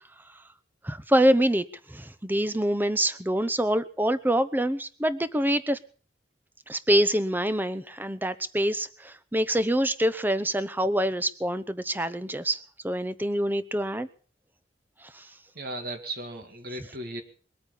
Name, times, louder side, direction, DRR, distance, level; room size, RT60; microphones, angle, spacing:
voice 1, 0.8-5.8 6.7-12.6 12.8-14.1, right 1 dB, 10° right, 13 dB, 0.9 m, -25 dB
voice 2, 15.5-17.2, right 1 dB, 60° right, 5 dB, 2.2 m, -36 dB
21.5 x 8.8 x 7.1 m, 0.42 s
head